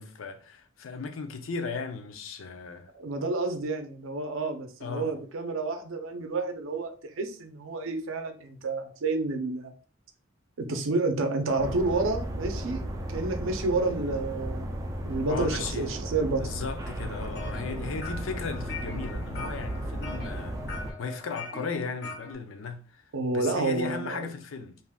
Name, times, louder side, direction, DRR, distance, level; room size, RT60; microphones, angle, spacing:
voice 1, 0.0-2.9 4.8-5.1 15.3-15.9 16.3-20.6 21.0-23.0 23.3-24.8, left 4 dB, 80° left, 0.5 m, -36 dB
voice 2, 2.9-9.7 10.6-14.7 15.1-16.5 23.1-24.3, right 3 dB, 80° right, 0.5 m, -30 dB
sound 1, 11.6-20.9, right 1 dB, 15° right, 0.3 m, -35 dB
sound 2, 17.0-22.4, left 3 dB, 55° left, 1.0 m, -42 dB
3.5 x 2.5 x 2.2 m
head